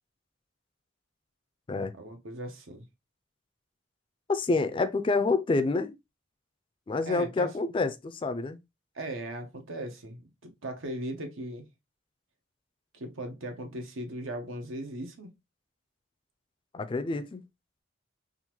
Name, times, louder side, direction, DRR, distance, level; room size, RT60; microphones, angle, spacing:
voice 1, 1.9-2.8 7.1-7.5 8.9-11.7 12.9-15.3, right 1 dB, 90° right, 0.9 m, -38 dB
voice 2, 4.3-6.0 6.9-8.6 16.7-17.4, left 3 dB, 25° left, 0.3 m, -28 dB
3.7 x 2.5 x 2.8 m
head